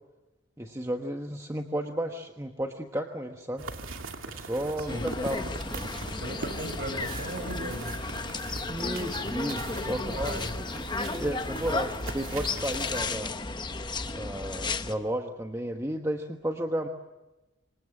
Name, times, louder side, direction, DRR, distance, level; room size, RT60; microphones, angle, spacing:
voice 1, 0.6-3.6 4.2-5.9 8.7-10.3 11.1-13.3 14.2-16.9, right 1 dB, 15° right, 4 dB, 1.2 m, -33 dB
sound 1, 3.6-13.2, right 3 dB, 85° right, 2.5 m, -41 dB
voice 2, 4.8-5.1 6.2-8.0 9.5-10.5, right 1 dB, 50° right, 8 dB, 5.0 m, -38 dB
sound 2, 4.9-14.9, left 3 dB, 20° left, 0.9 m, -34 dB
27.0 x 26.0 x 7.6 m, 1.0 s
head